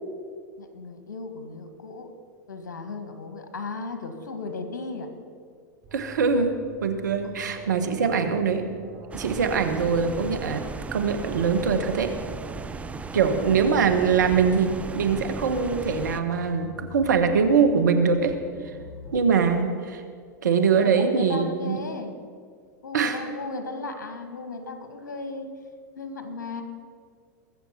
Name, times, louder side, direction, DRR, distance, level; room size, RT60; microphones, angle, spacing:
voice 1, 0.6-2.1 2.5-5.1 7.8-8.1 20.7-22.1 22.8-25.5 25.9-26.6, left 3 dB, 80° left, 7 dB, 1.8 m, -36 dB
Alarm, 5.8-11.7, equal, 40° right, 2.8 m, -47 dB
voice 2, 5.9-8.7 9.1-10.6 10.9-12.1 13.1-18.3 19.1-20.0 20.4-21.8 22.9-23.2, right 5 dB, 80° right, 7 dB, 1.4 m, -23 dB
sound 1, 9.1-16.2, right 4 dB, 15° right, 0.5 m, -36 dB
sound 2, 11.2-19.3, left 3 dB, 65° left, 4.2 m, -45 dB
21.5 x 7.3 x 5.9 m, 2.1 s
hypercardioid pair, 100°, 10 cm